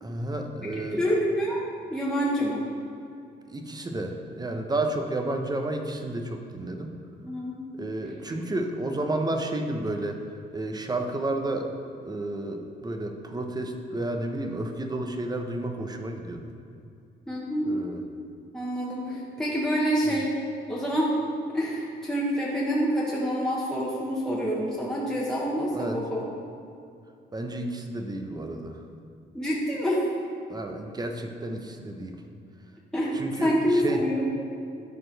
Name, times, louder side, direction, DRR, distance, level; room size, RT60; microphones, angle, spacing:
voice 1, 0.0-1.0 3.5-6.9 7.8-10.2 10.5-11.7 12.0-16.5 17.6-18.0 25.7-26.0 27.3-28.8 30.5-32.2 33.2-34.0, right 2 dB, 20° right, 4 dB, 0.9 m, -31 dB
voice 2, 0.7-2.6 7.2-7.6 8.3-8.4 17.3-17.7 18.5-20.3 20.7-21.1 21.5-26.3 29.3-30.0 32.9-34.3, equal, 5° left, -6 dB, 1.3 m, -27 dB
13.0 x 4.4 x 3.4 m, 2.5 s
cardioid pair, 90°, 20 cm